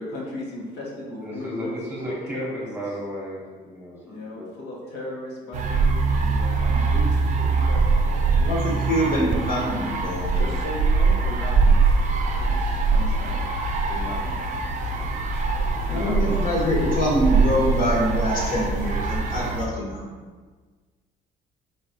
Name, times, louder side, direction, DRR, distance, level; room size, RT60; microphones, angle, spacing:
voice 1, 0.0-1.7 2.0-2.6 4.0-8.2 8.6-8.9 10.3-12.0 12.5-13.5 13.9-14.6 15.9-16.8, left 1 dB, 80° left, -5 dB, 1.2 m, -37 dB
voice 2, 1.2-4.5 15.1-15.2 16.0-16.1, equal, 10° right, -5 dB, 1.0 m, -34 dB
sound 1, 5.5-19.7, right 4 dB, 45° right, 0.5 m, -23 dB
voice 3, 8.4-10.4 15.9-20.0, equal, 55° left, -4 dB, 1.3 m, -25 dB
sound 2, 11.8-19.5, left 3 dB, 40° left, 0.9 m, -36 dB
4.0 x 3.4 x 2.8 m, 1.4 s
cardioid pair, 110°, 17 cm